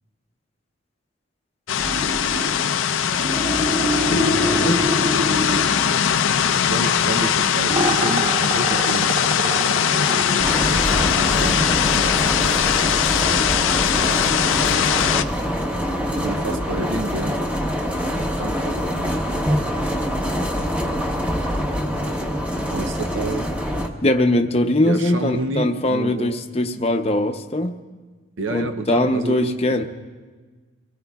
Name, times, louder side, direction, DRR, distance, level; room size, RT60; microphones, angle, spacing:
sound 1, 1.7-15.2, left 8 dB, 70° left, 0.5 m, -20 dB
sound 2, 1.8-2.7 3.0-7.4 7.7-11.7, equal, 45° right, 1.9 m, -26 dB
voice 1, 4.1-4.8 24.0-27.8 28.5-29.8, left 1 dB, 30° left, 6 dB, 0.7 m, -21 dB
voice 2, 6.6-9.2 9.4-11.7 16.1-17.4 18.3-19.2 22.7-23.5 24.8-26.4 28.4-29.8, right 2 dB, 70° right, 7 dB, 0.7 m, -30 dB
sound 3, 10.4-23.9, equal, 5° right, 0.9 m, -24 dB
24.5 x 18.0 x 2.4 m, 1.4 s
head